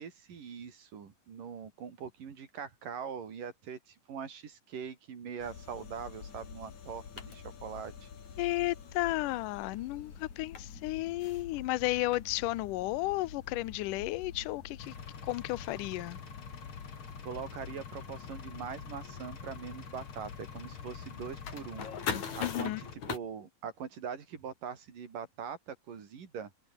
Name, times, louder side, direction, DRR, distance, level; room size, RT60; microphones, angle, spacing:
voice 1, 0.0-8.1 17.0-21.9 22.3-26.5, right 7 dB, 70° right, 5.0 m, -42 dB
sound 1, 5.4-23.2, left 7 dB, 55° left, 4.2 m, -44 dB
voice 2, 8.4-14.9 15.2-16.2 22.4-22.8, left 19 dB, 75° left, 2.3 m, -33 dB
Engine, 14.8-22.9, left 6 dB, 40° left, 3.1 m, -47 dB
omnidirectional pair, 4.0 m